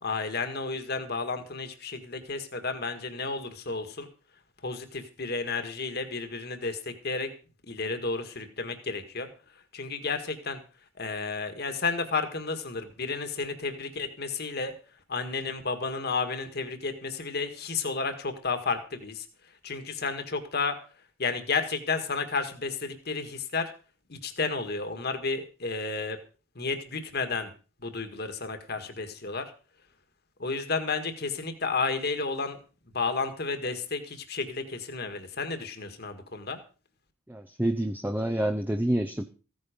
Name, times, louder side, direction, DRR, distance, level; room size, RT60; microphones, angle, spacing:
voice 1, 0.0-4.1 4.6-7.3 7.6-9.3 9.7-10.6 11.0-14.7 15.1-19.3 19.6-20.8 21.2-23.7 24.1-26.2 26.6-27.5 27.8-29.4 30.4-32.6 32.9-36.6, left 4 dB, 50° left, 8 dB, 1.9 m, -32 dB
voice 2, 37.3-39.2, right 1 dB, 10° right, 7 dB, 0.7 m, -28 dB
15.5 x 9.7 x 5.2 m, 0.37 s
head